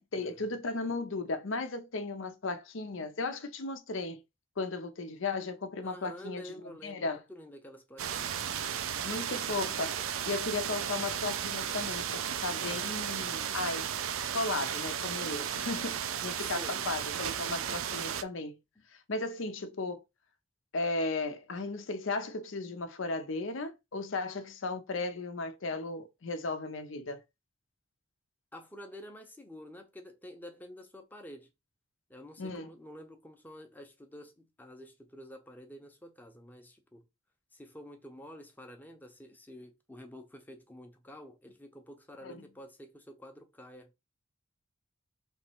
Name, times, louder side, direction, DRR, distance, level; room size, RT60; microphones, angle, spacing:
voice 1, 0.0-4.2 4.6-6.5 6.8-7.2 9.0-13.9 14.2-18.6 19.1-20.0 20.7-27.2 32.4-32.7 42.2-42.4, left 3 dB, 65° left, 0.7 m, -35 dB
voice 2, 5.8-8.5 16.4-16.9 18.8-18.9 28.5-31.5 32.1-37.0 37.5-43.9, equal, 10° left, 0.8 m, -49 dB
sound 1, 8.0-18.2, right 9 dB, 80° right, 0.5 m, -34 dB
3.5 x 3.1 x 4.4 m
head